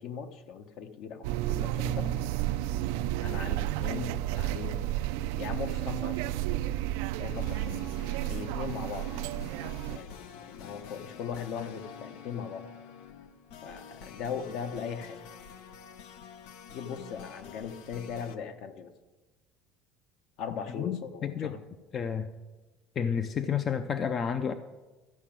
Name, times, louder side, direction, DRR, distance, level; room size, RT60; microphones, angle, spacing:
voice 1, 0.0-2.2 3.2-4.9 5.3-6.4 7.2-7.8 8.3-9.1 9.9-12.7 13.6-15.2 16.7-18.9 20.4-21.6, left 6 dB, 60° left, 8 dB, 1.1 m, -39 dB
sound 1, 1.2-10.0, right 14 dB, 85° right, 0.4 m, -32 dB
sound 2, 7.3-18.4, left 8 dB, 80° left, 0.9 m, -47 dB
voice 2, 20.8-21.6 21.9-22.3 23.0-24.5, left 7 dB, 30° left, 10 dB, 0.5 m, -30 dB
13.0 x 5.9 x 8.8 m, 1.2 s
cardioid pair, 150°, 0 cm